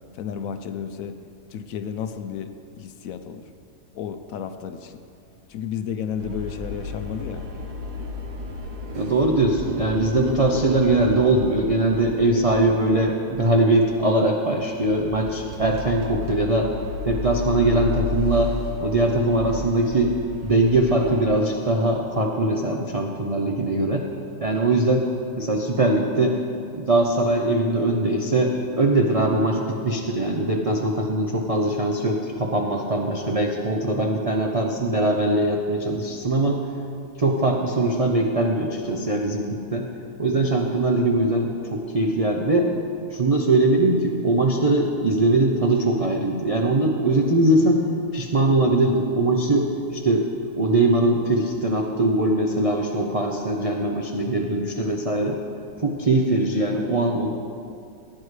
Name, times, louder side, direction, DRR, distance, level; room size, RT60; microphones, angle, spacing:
voice 1, 0.2-1.2 1.5-3.4 3.9-5.0 5.5-7.5, left 8 dB, 70° left, 9 dB, 0.9 m, -32 dB
sound 1, 6.2-12.9 13.2-13.5 13.9-14.0 14.5-21.2, left 2 dB, 85° right, 1.6 m, -33 dB
voice 2, 8.9-16.7 17.0-20.1 20.4-24.0 24.4-25.0 25.4-26.3 26.7-36.6 37.2-39.9 40.2-42.7 43.1-47.8 48.1-50.3 50.6-55.4 55.8-57.3, right 2 dB, 55° right, 0 dB, 0.4 m, -21 dB
16.0 x 9.4 x 3.2 m, 2.5 s
omnidirectional pair, 1.7 m